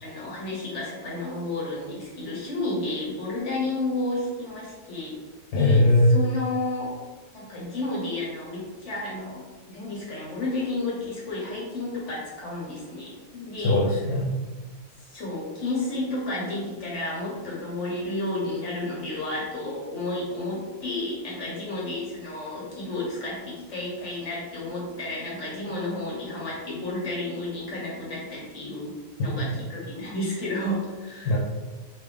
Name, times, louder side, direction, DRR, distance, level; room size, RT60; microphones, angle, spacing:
voice 1, 0.0-5.2 5.5-5.8 6.1-6.9 7.3-13.7 15.1-28.9 29.2-31.3, left 2 dB, 50° left, -4 dB, 1.2 m, -31 dB
voice 2, 5.5-6.2 13.6-14.4 29.3-29.5 31.2-31.4, left 1 dB, 85° left, -4 dB, 1.4 m, -20 dB
3.6 x 3.1 x 3.3 m, 1.3 s
omnidirectional pair, 1.8 m